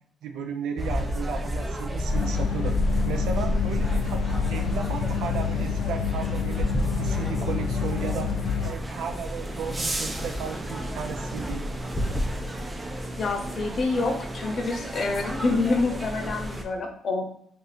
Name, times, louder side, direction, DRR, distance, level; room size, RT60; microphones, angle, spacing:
voice 1, 0.2-2.8 3.1-6.7 7.0-8.3 8.6-11.6, right 6 dB, 85° right, 4 dB, 0.5 m, -34 dB
sound 1, 0.8-16.6, equal, 20° right, 0.5 m, -31 dB
sound 2, 2.1-8.7, left 6 dB, 80° left, 0.3 m, -28 dB
sound 3, 9.3-16.6, left 1 dB, 15° left, 0.8 m, -37 dB
voice 2, 13.2-17.2, left 3 dB, 50° left, 4 dB, 0.7 m, -27 dB
2.7 x 2.5 x 4.1 m, 0.66 s
cardioid pair, 90°, 0 cm